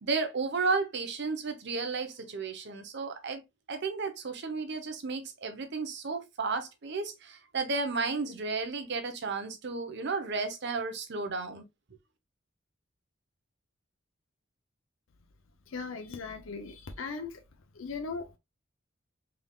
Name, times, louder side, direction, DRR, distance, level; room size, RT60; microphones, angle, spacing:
voice 1, 0.0-3.4 3.7-11.6, right 4 dB, 60° right, 0.8 m, -33 dB
voice 2, 15.7-17.4 17.7-18.4, left 4 dB, 85° left, 0.6 m, -38 dB
3.7 x 3.4 x 2.3 m
head